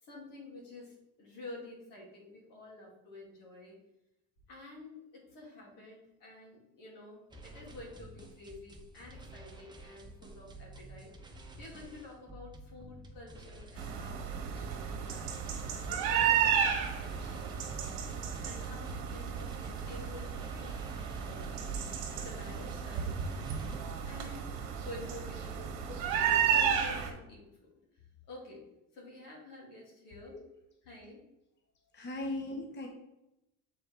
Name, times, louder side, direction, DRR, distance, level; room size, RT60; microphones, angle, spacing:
voice 1, 0.0-3.8 4.5-15.3 15.8-18.0 18.4-20.8 21.2-21.8 22.2-23.1 24.1-25.6 26.0-26.2 26.5-27.4 28.3-28.6 28.9-30.4 30.9-31.2, left 2 dB, 75° left, -2 dB, 2.5 m, -50 dB
sound 1, 7.3-23.8, right 2 dB, 15° right, 0.9 m, -50 dB
sound 2, 13.8-27.1, right 8 dB, 90° right, 1.4 m, -33 dB
voice 2, 25.6-26.7 30.3-30.4 31.9-32.9, left 2 dB, 30° left, 1 dB, 1.0 m, -41 dB
6.8 x 4.7 x 3.3 m, 0.88 s
cardioid pair, 100°, 33 cm